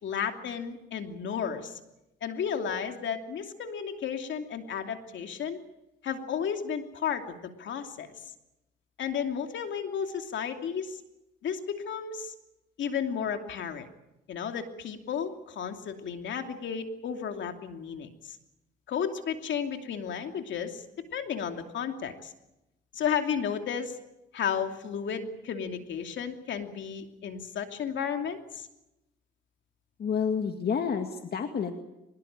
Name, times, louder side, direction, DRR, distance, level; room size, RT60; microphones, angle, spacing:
voice 1, 0.0-1.8 2.2-5.6 6.0-8.1 9.0-11.0 11.4-12.3 12.8-13.9 14.3-18.4 18.9-20.8 21.1-22.3 22.9-24.0 24.3-28.7, left 7 dB, 70° left, 5 dB, 2.8 m, -33 dB
voice 2, 30.0-31.7, left 6 dB, 50° left, 6 dB, 2.0 m, -29 dB
24.0 x 21.0 x 8.9 m, 0.92 s
cardioid pair, 90°, 20 cm